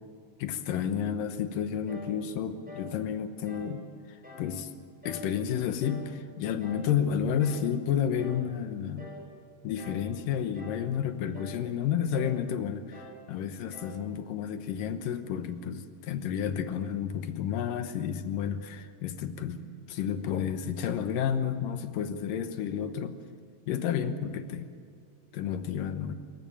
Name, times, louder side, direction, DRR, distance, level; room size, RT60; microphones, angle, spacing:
voice 1, 0.4-4.7 5.1-9.1 9.6-23.2 23.7-24.7 25.3-26.1, left 8 dB, 80° left, 9 dB, 2.7 m, -31 dB
sound 1, 1.9-2.2 2.7-2.9 3.5-3.7 4.2-4.5 5.0-5.3 5.8-6.1 6.6-6.9 7.4-7.7 8.2-8.5 9.0-9.3 9.8-10.1 10.5-10.9 11.3-11.6 12.1-12.4 12.9-13.2 13.7-14.0, left 1 dB, ahead, 5.9 m, -46 dB
25.5 x 15.0 x 8.9 m, 2.3 s
omnidirectional pair, 4.0 m